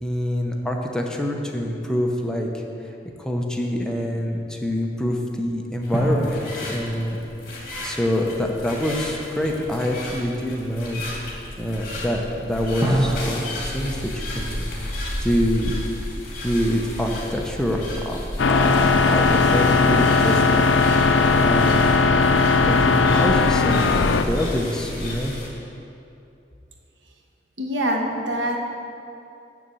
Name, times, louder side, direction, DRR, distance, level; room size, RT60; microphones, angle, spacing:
voice 1, 0.0-2.6 3.2-7.2 7.8-11.0 11.6-14.7 15.2-15.8 16.4-18.2 18.4-20.6 21.4-21.9 22.6-25.3, equal, 5° left, 0 dB, 0.7 m, -25 dB
sound 1, 5.8-25.5, left 1 dB, 55° left, 2.2 m, -33 dB
sound 2, 5.9-8.8 12.8-16.0, right 1 dB, 15° right, 1.4 m, -29 dB
sound 3, 18.4-24.2, left 4 dB, 85° left, 0.5 m, -18 dB
voice 2, 27.6-28.6, equal, 85° right, 1 dB, 1.1 m, -24 dB
7.0 x 6.7 x 7.6 m, 2.7 s
head